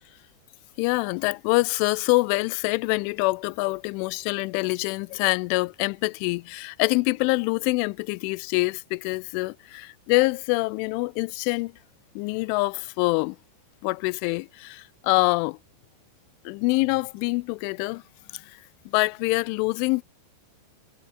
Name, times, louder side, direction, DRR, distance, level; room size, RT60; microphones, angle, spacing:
voice 1, 0.8-9.6 10.1-11.7 12.2-13.4 13.8-15.6 16.5-18.0 18.3-18.6 18.9-20.0, left 25 dB, 90° left, 3.0 m, -25 dB
omnidirectional pair, 5.4 m